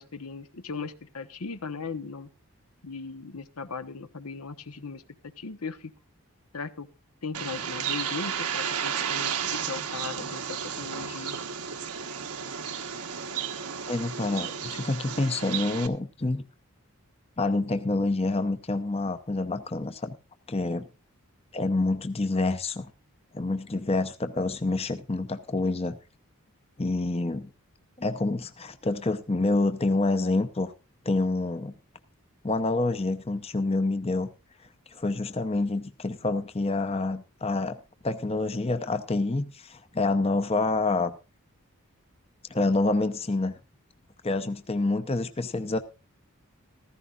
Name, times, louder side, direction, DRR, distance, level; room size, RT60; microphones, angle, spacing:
voice 1, 0.0-2.3 2.8-5.9 6.5-6.9 7.2-11.4, left 4 dB, 80° left, 1.1 m, -38 dB
Bird, 7.3-15.9, right 7 dB, 85° right, 1.3 m, -33 dB
voice 2, 13.9-16.4 17.4-20.1 20.5-20.9 21.5-22.9 23.3-26.0 26.8-27.5 28.0-30.7 31.0-31.7 32.4-34.3 34.9-41.1 42.5-43.5 44.2-45.8, left 2 dB, 25° left, 0.7 m, -27 dB
15.5 x 14.5 x 2.5 m
head